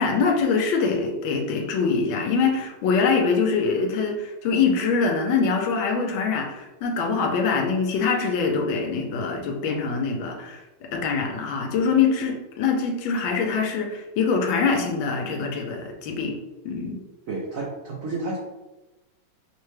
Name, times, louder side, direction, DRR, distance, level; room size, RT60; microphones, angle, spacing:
voice 1, 0.0-16.4 16.6-17.0, left 5 dB, 80° left, 2 dB, 1.4 m, -24 dB
voice 2, 17.3-18.4, right 3 dB, 70° right, -3 dB, 0.8 m, -30 dB
5.3 x 2.2 x 3.2 m, 1.1 s
omnidirectional pair, 2.2 m